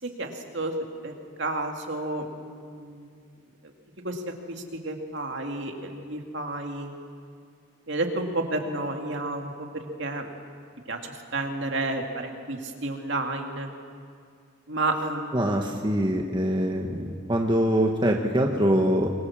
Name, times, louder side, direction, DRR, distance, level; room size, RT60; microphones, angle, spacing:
voice 1, 0.0-0.7 1.0-1.1 1.4-3.2 3.6-3.7 4.0-6.9 7.9-10.3 10.9-13.7 14.7-15.4 15.6-15.8, right 2 dB, 60° right, 3 dB, 2.6 m, -31 dB
voice 2, 15.3-19.1, equal, 20° right, 1 dB, 1.4 m, -24 dB
24.5 x 24.5 x 7.4 m, 2.3 s
head